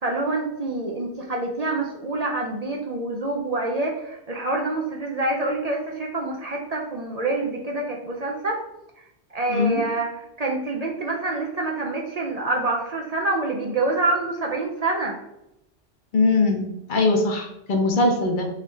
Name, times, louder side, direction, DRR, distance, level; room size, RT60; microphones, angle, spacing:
voice 1, 0.0-8.6 9.3-10.1 10.4-15.2, right 2 dB, 50° right, -1 dB, 0.5 m, -26 dB
voice 2, 9.5-9.8 16.1-18.5, left 3 dB, 55° left, 2 dB, 0.7 m, -21 dB
3.7 x 3.1 x 3.2 m, 0.85 s
omnidirectional pair, 1.1 m